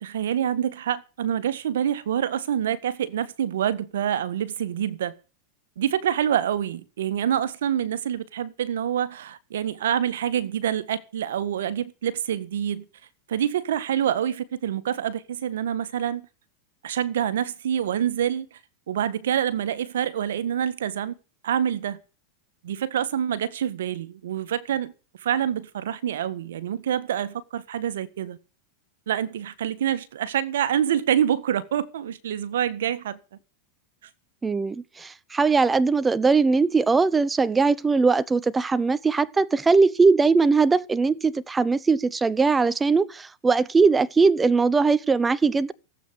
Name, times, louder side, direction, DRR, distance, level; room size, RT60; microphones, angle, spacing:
voice 1, 0.0-5.1 5.8-12.8 13.3-16.3 16.8-18.5 18.9-21.1 21.4-22.0 22.6-24.9 25.2-28.4 29.1-33.2, right 9 dB, 80° right, 1.6 m, -26 dB
voice 2, 34.4-45.7, right 4 dB, 15° right, 0.8 m, -20 dB
16.5 x 8.4 x 8.2 m
hypercardioid pair, 115°, 0 cm